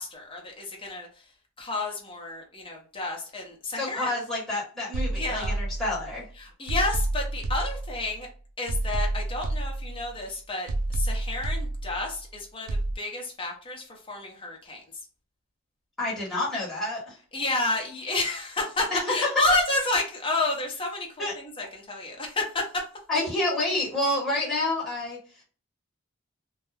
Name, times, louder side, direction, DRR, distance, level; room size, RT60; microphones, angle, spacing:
voice 1, 0.0-1.3 1.6-4.1 5.1-5.5 6.4-8.3 8.6-12.7 12.9-14.8 17.3-22.8, left 2 dB, 25° left, 0 dB, 0.7 m, -30 dB
voice 2, 3.7-6.2 16.0-17.2 18.9-19.0 21.2-21.3 23.1-25.2, left 1 dB, ahead, -8 dB, 1.1 m, -28 dB
sound 1, 4.9-6.2 6.7-8.2 8.7-10.2 10.7-12.2 12.7-12.9, right 2 dB, 80° right, 0.4 m, -29 dB
2.3 x 2.1 x 3.1 m, 0.39 s
head